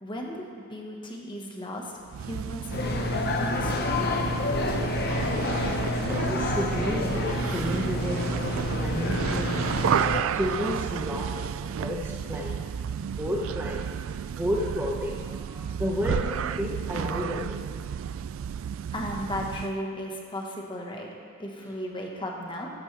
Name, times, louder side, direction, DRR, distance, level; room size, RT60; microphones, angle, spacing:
voice 1, 0.0-1.9 2.2-4.2 18.9-21.1 21.4-22.7, left 1 dB, 20° left, 0 dB, 1.4 m, -35 dB
sound 1, 2.1-19.8, right 8 dB, 65° right, 0.3 m, -32 dB
sound 2, 2.7-10.2, left 2 dB, 50° left, 0.9 m, -28 dB
voice 2, 5.9-9.8 10.3-12.6 13.0-13.9 14.3-17.6, equal, 10° right, -2 dB, 0.8 m, -32 dB
14.5 x 12.5 x 3.4 m, 2.2 s
head